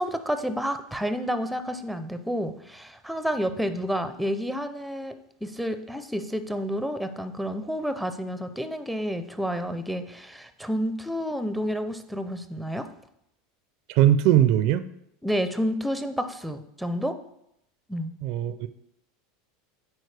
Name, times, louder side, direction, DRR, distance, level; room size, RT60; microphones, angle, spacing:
voice 1, 0.0-12.9 15.2-17.2 17.9-18.1, equal, ahead, 10 dB, 0.5 m, -30 dB
voice 2, 13.9-14.9 18.2-18.7, right 11 dB, 60° right, 13 dB, 0.4 m, -20 dB
9.2 x 4.3 x 3.3 m, 0.77 s
supercardioid pair, 120°, 0 cm